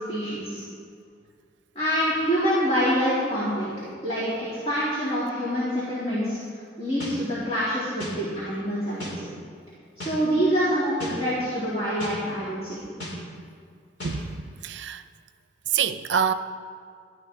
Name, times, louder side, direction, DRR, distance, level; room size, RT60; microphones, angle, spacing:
voice 1, 0.1-0.6 1.7-3.7 4.0-6.4 6.8-9.3 10.0-12.8, equal, 35° left, 3.0 m, -26 dB
sound 1, 7.0-7.1 8.0-8.1 9.0-9.1 10.0-10.1 11.0-11.1 12.0-12.1 13.0-13.1 14.0-14.1, equal, 75° left, 3.7 m, -35 dB
voice 2, 14.0-15.0 15.7-16.3, right 7 dB, 75° right, 0.6 m, -26 dB
14.5 x 12.0 x 3.9 m
head